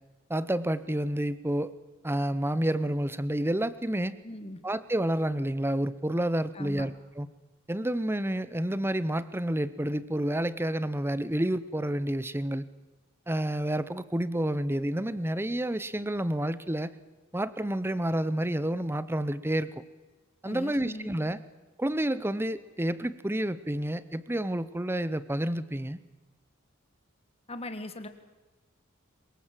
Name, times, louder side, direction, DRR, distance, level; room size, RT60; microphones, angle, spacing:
voice 1, 0.3-1.7 2.0-4.1 4.6-7.3 7.7-12.7 13.3-16.9 17.3-19.7 20.4-21.4 21.8-26.0, right 1 dB, 10° right, 15 dB, 0.8 m, -29 dB
voice 2, 4.2-4.6 6.5-6.9 20.4-21.1 27.5-28.1, left 1 dB, 30° left, 9 dB, 1.6 m, -39 dB
23.0 x 21.5 x 7.6 m, 1.2 s
head